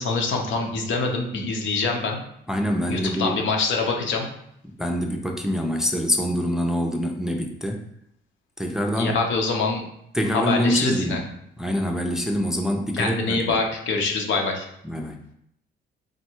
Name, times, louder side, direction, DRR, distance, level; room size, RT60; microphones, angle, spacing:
voice 1, 0.0-2.2 2.9-4.3 9.0-9.8 10.3-11.2 13.0-14.7, left 3 dB, 70° left, 2 dB, 0.8 m, -25 dB
voice 2, 2.5-3.4 4.8-7.8 8.6-9.2 10.1-11.2 11.6-13.6 14.8-15.2, equal, ahead, 1 dB, 0.5 m, -25 dB
3.7 x 2.2 x 4.4 m, 0.74 s
cardioid pair, 90°, 20 cm